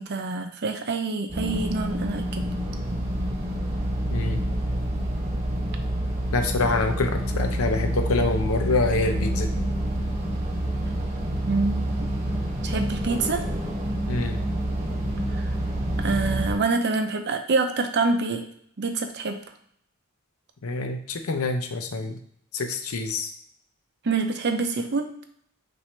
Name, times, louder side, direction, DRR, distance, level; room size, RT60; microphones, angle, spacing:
voice 1, 0.0-2.5 11.4-12.1 12.6-13.4 15.3-15.5 16.0-18.5 18.8-19.4 24.0-25.1, right 3 dB, 55° right, 6 dB, 0.6 m, -26 dB
sound 1, 1.3-16.6, right 1 dB, 35° right, 1.0 m, -27 dB
voice 2, 4.1-4.4 6.3-9.5 14.1-14.4 20.6-22.2 22.5-23.3, left 3 dB, 85° left, 6 dB, 0.6 m, -26 dB
5.9 x 2.6 x 3.3 m, 0.67 s
head